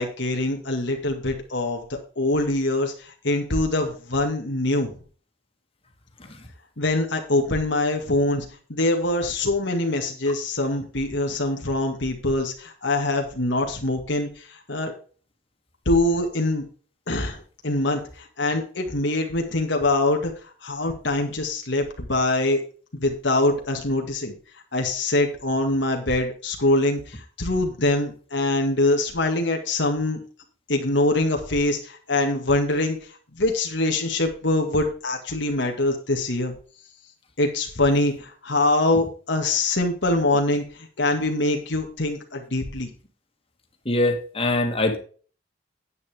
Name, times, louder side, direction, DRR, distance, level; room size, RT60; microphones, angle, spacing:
voice 1, 0.0-5.0 6.8-8.4 8.7-14.9 15.9-16.6 17.1-20.3 20.6-22.6 22.9-24.3 24.7-30.2 30.7-33.0 33.4-36.5 37.4-40.6 41.0-42.9, left 2 dB, 70° left, 2 dB, 2.0 m, -24 dB
voice 2, 43.9-45.0, left 2 dB, 30° left, 2 dB, 2.3 m, -22 dB
9.9 x 9.5 x 3.6 m, 0.40 s
head